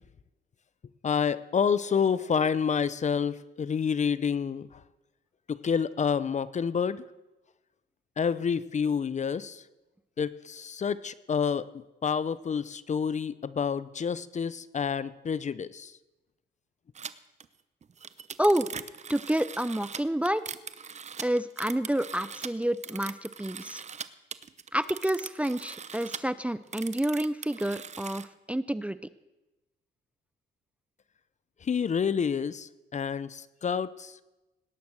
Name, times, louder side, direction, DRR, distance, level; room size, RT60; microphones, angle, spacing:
voice 1, 1.0-4.8 5.5-7.0 8.2-9.6 10.2-15.9 31.6-34.2, left 6 dB, 35° left, 17 dB, 0.7 m, -29 dB
sound 1, 16.9-17.1 17.4-17.5 17.8-24.1 24.3-26.2 26.7-28.2, right 6 dB, 35° right, 0.8 m, -40 dB
voice 2, 18.4-18.7 19.1-20.4 21.2-23.8 24.7-29.1, right 1 dB, 5° right, 15 dB, 0.5 m, -29 dB
18.5 x 10.5 x 6.3 m, 1.0 s
cardioid pair, 90°, 20 cm